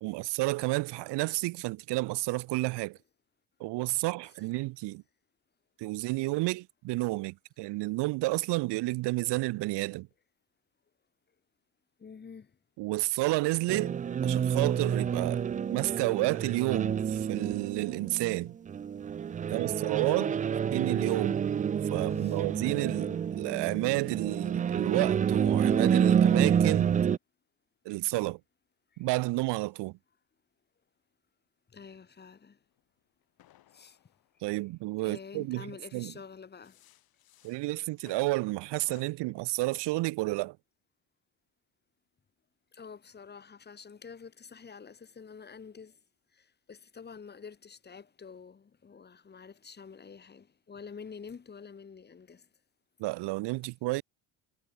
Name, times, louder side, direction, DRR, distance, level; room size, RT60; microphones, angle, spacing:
voice 1, 0.0-3.0 3.6-5.0 5.8-10.1 12.8-13.9 14.2-18.5 19.5-20.3 20.7-21.4 21.9-26.9 27.9-28.4 29.0-30.0 34.4-35.7 35.9-36.1 37.4-40.6 53.0-54.0, right 21 dB, 85° right, 2.2 m, -31 dB
voice 2, 12.0-12.5 19.4-19.5 20.1-20.4 22.1-22.4 22.9-23.2 29.0-29.1 31.7-32.6 33.7-34.0 35.0-36.8 42.7-46.0 46.3-52.5, left 6 dB, 25° left, 5.0 m, -48 dB
sound 1, 13.7-27.2, right 8 dB, 20° right, 0.4 m, -28 dB
sound 2, 32.7-35.5 36.3-39.1, left 14 dB, 60° left, 7.4 m, -60 dB
cardioid pair, 155°, 40 cm